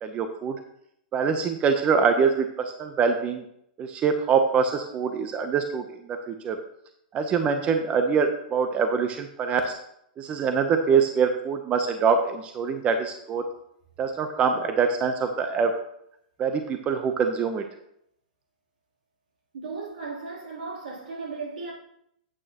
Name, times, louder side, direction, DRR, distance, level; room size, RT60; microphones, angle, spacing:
voice 1, 0.0-0.5 1.1-2.5 2.8-3.4 3.8-5.8 6.3-6.6 7.1-9.8 10.2-13.5 14.0-15.7 16.4-17.6, right 5 dB, 25° right, 0.8 m, -24 dB
voice 2, 19.5-21.7, right 4 dB, 80° right, 3.3 m, -36 dB
8.8 x 8.7 x 3.0 m
hypercardioid pair, 125°, 5 cm